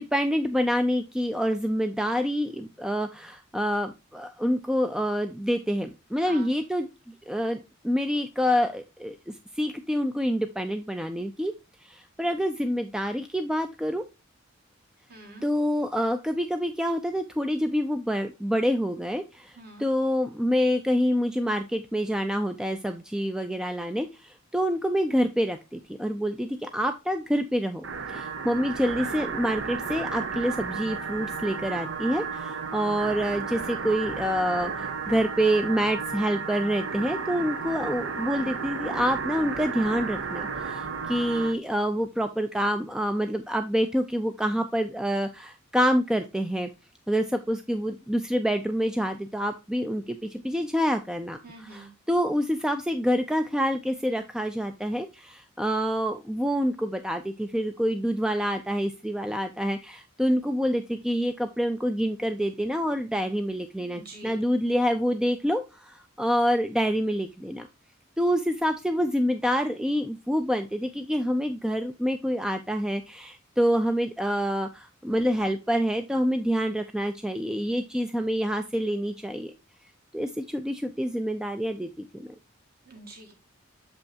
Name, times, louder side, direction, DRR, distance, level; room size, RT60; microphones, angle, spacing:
voice 1, 0.0-6.9 7.3-7.6 7.8-11.5 11.8-14.0 15.4-46.7 47.1-67.7 68.2-79.5 80.1-82.3, equal, 5° right, 7 dB, 0.3 m, -27 dB
voice 2, 15.1-15.4 19.6-19.9 51.4-51.9 64.0-64.4 82.9-83.3, right 2 dB, 45° right, 3 dB, 1.7 m, -45 dB
sound 1, 27.8-41.6, right 5 dB, 65° right, 0.6 m, -33 dB
7.1 x 5.4 x 2.7 m, 0.25 s
head